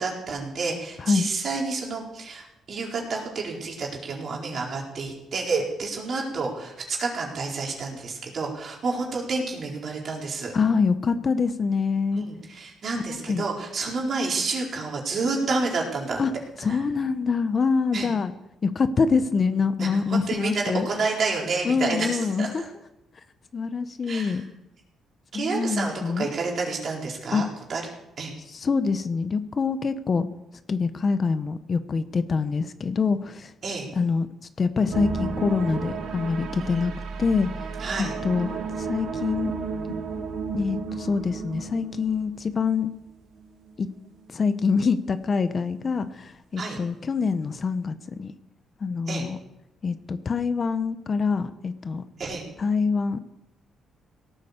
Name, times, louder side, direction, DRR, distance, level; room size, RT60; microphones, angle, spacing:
voice 1, 0.0-10.5 12.1-16.2 16.7-16.8 17.9-18.1 19.8-22.5 24.1-24.4 25.3-27.8 28.2-28.3 33.6-33.9 36.6-36.9 37.8-38.1 46.6-46.8 49.1-49.2 52.2-52.5, right 3 dB, 55° right, -1 dB, 4.4 m, -29 dB
voice 2, 10.5-12.2 13.0-13.5 16.2-16.3 16.6-18.3 18.6-20.9 21.6-22.7 23.5-24.4 25.3-26.3 27.3-27.4 28.5-30.3 30.7-33.5 33.9-34.3 34.6-36.9 37.2-37.6 38.0-39.6 39.8-39.9 40.5-42.9 43.8-43.9 44.3-48.3 48.8-49.4 49.8-52.0 52.6-53.2, left 5 dB, 40° left, 12 dB, 0.9 m, -25 dB
sound 1, 34.9-43.1 43.4-43.7 44.2-44.3, right 5 dB, 75° right, 1.9 m, -33 dB
17.5 x 9.0 x 6.8 m, 0.91 s
cardioid pair, 90°, 0 cm